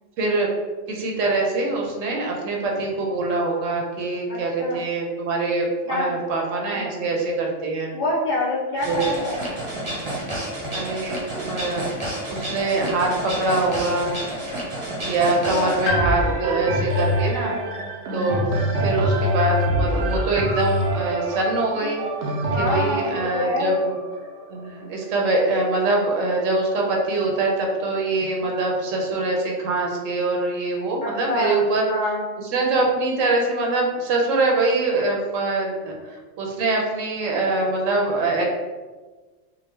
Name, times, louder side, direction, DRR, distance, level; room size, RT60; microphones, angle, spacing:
voice 1, 0.2-0.5 0.9-8.0 8.8-9.1 10.7-11.8 12.3-14.2 15.1-17.6 18.1-18.4 18.8-22.0 22.6-24.0 24.5-31.9 32.5-38.5, right 2 dB, 85° right, 0 dB, 1.0 m, -23 dB
voice 2, 4.3-4.8 5.9-6.2 6.7-7.1 7.9-9.6 15.5-15.8 17.4-17.9 22.5-23.8 28.4-28.5 31.0-31.6 31.9-32.3, left 1 dB, 60° left, -4 dB, 0.5 m, -27 dB
sound 1, 8.8-15.9, right 1 dB, 30° right, 0.6 m, -30 dB
Piano, 15.9-19.7 20.0-20.1 21.2-21.3, left 4 dB, 90° left, 1.0 m, -33 dB
sound 2, 15.9-25.7 26.3-26.4, equal, 70° right, 0.8 m, -25 dB
3.6 x 2.1 x 3.2 m, 1.3 s
omnidirectional pair, 1.3 m